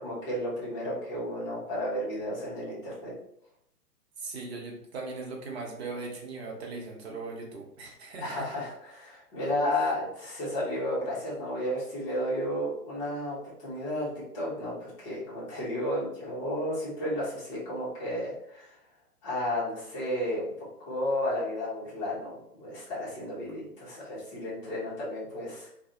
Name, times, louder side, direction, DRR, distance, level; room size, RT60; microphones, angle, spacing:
voice 1, 0.0-3.1 8.2-18.8 19.2-20.5 20.8-25.7, left 1 dB, 20° left, -7 dB, 0.9 m, -32 dB
voice 2, 4.2-8.6, right 3 dB, 40° right, 0 dB, 0.7 m, -39 dB
2.5 x 2.3 x 2.7 m, 0.75 s
figure-of-eight pair, 120°, 47 cm